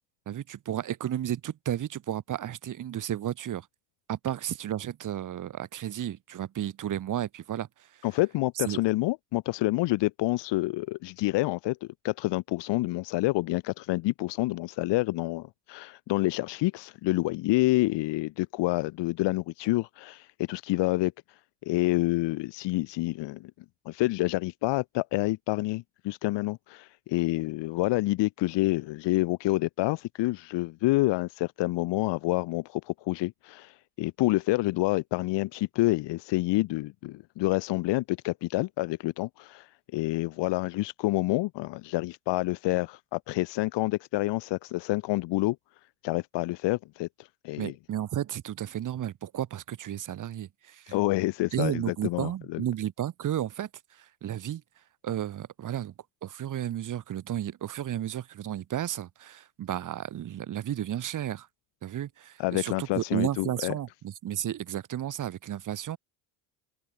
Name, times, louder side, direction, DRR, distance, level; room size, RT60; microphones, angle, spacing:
voice 1, 0.3-3.7 4.1-7.7 8.7-8.8 47.6-51.0 51.5-54.6 55.0-55.9 56.2-61.5 61.8-66.0, right 11 dB, 45° right, 2.2 m, -33 dB
voice 2, 8.0-23.5 23.8-45.6 46.0-47.7 50.9-52.6 62.4-63.7, left 19 dB, 65° left, 3.0 m, -28 dB
open air
cardioid pair, 115°, 45 cm